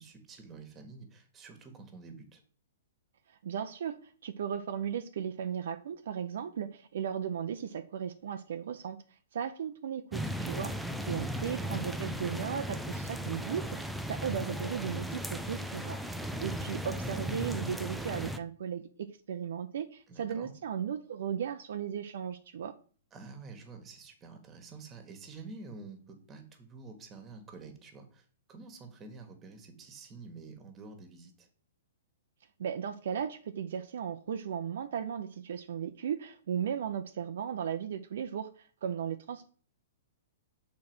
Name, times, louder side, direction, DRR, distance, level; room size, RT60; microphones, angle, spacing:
voice 1, 0.0-2.4 11.0-11.7 20.1-20.5 23.1-31.5, right 4 dB, 20° right, 6 dB, 1.7 m, -49 dB
voice 2, 3.4-9.0 9.3-10.7 11.0-16.0 16.4-22.7 32.6-39.5, right 8 dB, 70° right, 7 dB, 0.6 m, -36 dB
sound 1, 10.1-18.4, equal, ahead, 0.6 m, -36 dB
6.6 x 4.1 x 6.1 m, 0.43 s
hypercardioid pair, 130°, 0 cm